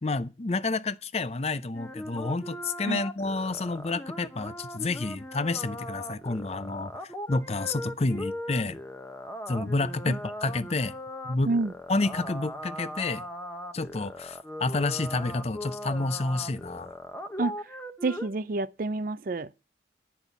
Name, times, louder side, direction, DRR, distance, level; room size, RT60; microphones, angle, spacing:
voice 1, 0.0-8.8 9.5-10.9 11.2-11.5 11.9-13.2 13.7-16.9, left 3 dB, 35° left, 0.6 m, -29 dB
sound 1, 1.7-18.3, equal, 10° left, 1.0 m, -39 dB
voice 2, 18.0-19.5, right 3 dB, 50° right, 0.5 m, -28 dB
10.5 x 5.9 x 8.2 m
head